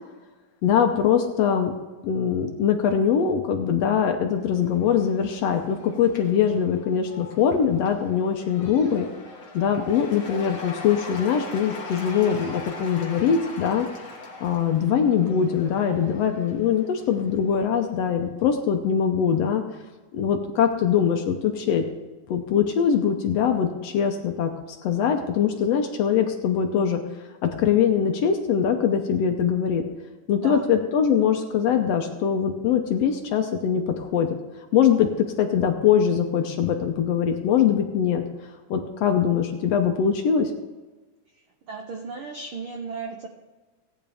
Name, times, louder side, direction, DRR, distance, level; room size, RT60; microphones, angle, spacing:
voice 1, 0.6-1.7 2.0-9.1 9.5-13.9 14.4-19.6 20.1-21.8 22.3-24.5 24.8-27.0 27.4-29.8 30.3-34.3 34.7-35.1 35.4-38.2 38.7-40.5, left 8 dB, 70° left, 5 dB, 1.7 m, -22 dB
Cheering / Applause / Crowd, 4.4-17.9, left 3 dB, 35° left, 1.4 m, -41 dB
voice 2, 30.4-30.7 41.7-43.3, right 4 dB, 75° right, 3 dB, 1.2 m, -35 dB
17.5 x 9.7 x 3.5 m, 1.2 s
omnidirectional pair, 3.5 m